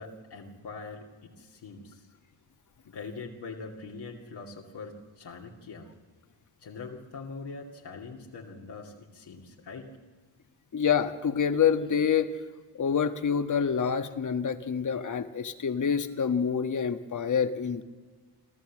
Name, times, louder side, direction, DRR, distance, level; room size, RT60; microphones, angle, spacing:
voice 1, 0.0-2.1 2.8-5.9 6.6-9.9, left 4 dB, 65° left, -1 dB, 2.6 m, -43 dB
voice 2, 10.7-12.3 12.8-17.8, left 7 dB, 45° left, 9 dB, 1.4 m, -27 dB
29.0 x 13.0 x 7.5 m, 1.4 s
cardioid pair, 85°, 43 cm